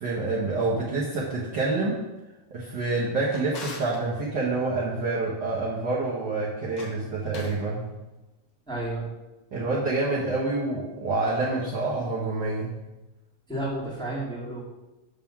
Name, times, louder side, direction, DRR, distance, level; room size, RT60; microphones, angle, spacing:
voice 1, 0.0-2.0 2.5-7.8 9.5-12.7, right 3 dB, 75° right, -5 dB, 1.0 m, -27 dB
Drawer open or close, 2.8-4.0 6.6-7.6, left 3 dB, 60° left, 1.7 m, -43 dB
voice 2, 8.6-9.1 13.5-14.6, right 1 dB, ahead, -7 dB, 1.4 m, -31 dB
7.5 x 3.6 x 5.8 m, 1.0 s
omnidirectional pair, 3.4 m